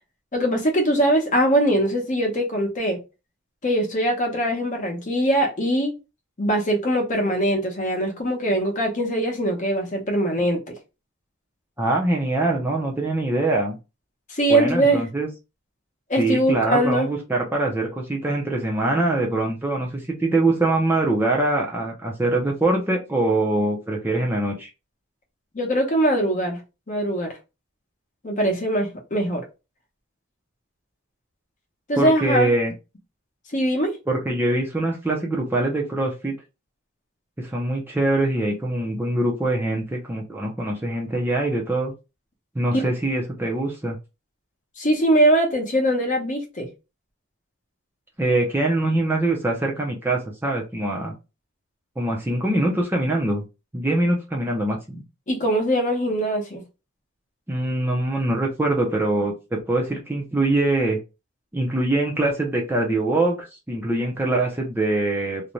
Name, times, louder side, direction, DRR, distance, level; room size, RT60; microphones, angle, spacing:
voice 1, 0.3-3.0 3.6-5.9 6.4-10.7 14.3-15.0 16.1-17.1 25.5-26.6 26.9-27.3 28.2-29.4 31.9-32.5 33.5-33.9 42.7-42.9 44.8-46.7 55.3-56.6, right 1 dB, 35° left, 0.7 m, -22 dB
voice 2, 11.8-13.8 14.5-15.3 16.2-24.7 31.9-32.7 34.1-36.3 37.4-41.9 42.5-44.0 48.2-51.1 52.0-53.4 53.7-55.0 57.5-61.0 61.5-65.5, right 2 dB, 10° right, 0.4 m, -23 dB
2.5 x 2.1 x 3.0 m
head